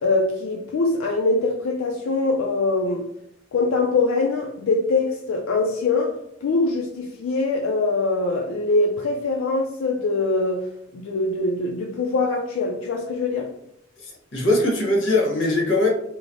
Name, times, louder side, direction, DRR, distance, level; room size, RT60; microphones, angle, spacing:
voice 1, 0.0-3.1 3.5-13.5, left 3 dB, 90° left, 0 dB, 0.4 m, -23 dB
voice 2, 14.0-15.9, left 2 dB, 65° left, -2 dB, 0.9 m, -21 dB
3.1 x 2.0 x 2.5 m, 0.76 s
head